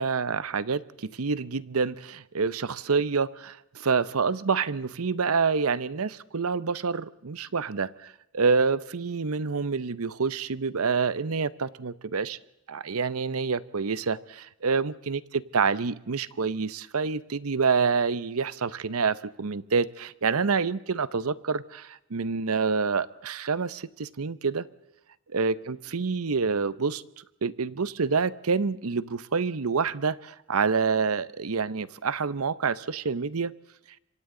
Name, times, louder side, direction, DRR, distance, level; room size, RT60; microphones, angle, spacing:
voice 1, 0.0-12.4 12.7-24.6 25.3-27.0 27.4-33.5, right 5 dB, 85° right, 17 dB, 0.8 m, -27 dB
26.5 x 25.0 x 3.8 m, 0.86 s
head